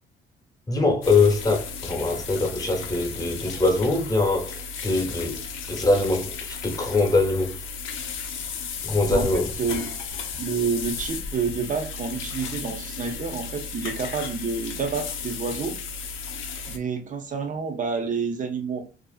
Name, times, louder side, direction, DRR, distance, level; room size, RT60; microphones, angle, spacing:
voice 1, 0.7-5.4 5.7-7.6 8.8-9.5, left 3 dB, 20° left, 0.9 m, -23 dB
sound 1, 1.0-16.8, left 5 dB, 80° left, 0.5 m, -34 dB
voice 2, 9.1-9.9 10.4-15.8 16.7-18.8, right 5 dB, 40° right, 0.7 m, -29 dB
2.5 x 2.3 x 2.3 m
cardioid pair, 90°, 20 cm